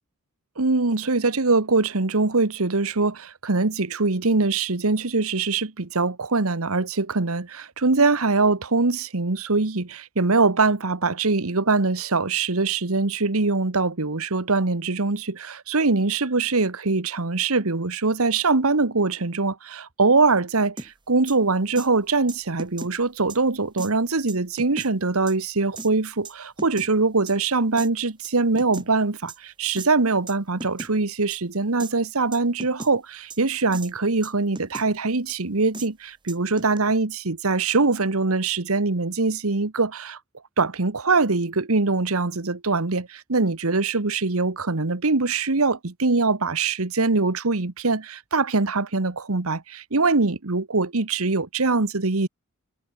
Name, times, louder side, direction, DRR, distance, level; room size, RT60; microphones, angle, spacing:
voice 1, 0.6-40.2 40.6-52.3, right 3 dB, 80° right, 1.4 m, -23 dB
sound 1, 20.8-20.9 21.3-21.4 21.7-21.9 22.3-22.9 23.3-23.4 23.8-23.9 24.3-24.9 25.3-25.4 25.8-25.9 26.2-26.9 27.3-27.4 27.8-27.9 28.2-28.9 29.3-29.4 29.8-29.9 30.3-30.4 30.6-30.9 31.3-31.4 31.8-31.9 32.3-32.9 33.3-33.4 33.7-33.9 34.2-34.9 35.3-35.4 35.7-35.9 36.3-36.8, right 3 dB, 20° right, 3.8 m, -36 dB
head